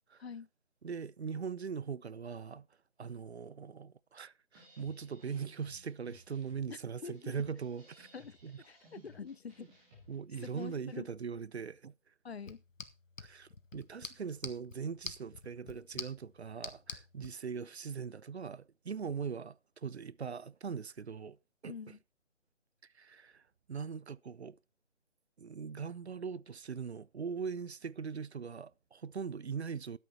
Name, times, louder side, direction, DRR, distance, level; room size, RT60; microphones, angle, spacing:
voice 1, 0.8-2.7 3.0-8.1 8.4-8.5 10.1-11.9 13.2-21.4 21.6-21.7 22.9-23.4 23.7-24.6 25.4-30.0, right 6 dB, 60° right, 0.5 m, -41 dB
sound 1, 4.5-10.8, equal, 5° right, 1.0 m, -60 dB
voice 2, 6.7-7.4 8.1-9.7 10.4-11.1 12.2-12.6 21.7-22.0, left 6 dB, 55° left, 0.5 m, -46 dB
sound 2, 12.4-17.3, left 4 dB, 85° left, 1.6 m, -47 dB
13.0 x 8.3 x 4.2 m
figure-of-eight pair, 165°, 38 cm